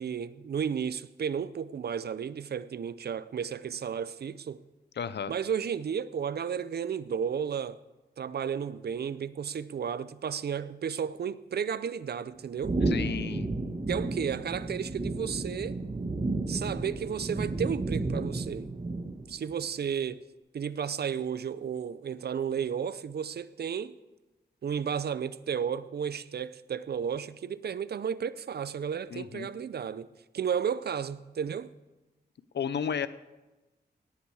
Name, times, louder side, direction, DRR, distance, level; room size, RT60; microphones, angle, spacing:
voice 1, 0.0-4.6 5.3-7.8 8.2-12.8 13.9-15.8 16.5-18.7 19.3-20.2 20.5-24.0 24.6-30.1 30.3-31.7, right 7 dB, 65° right, 0.5 m, -33 dB
voice 2, 5.0-5.3 12.9-13.5 29.1-29.5 32.5-33.1, left 7 dB, 80° left, 0.6 m, -33 dB
sound 1, 12.6-19.4, right 2 dB, 35° right, 1.4 m, -32 dB
18.0 x 10.0 x 4.8 m
wide cardioid pair, 140°, 17 cm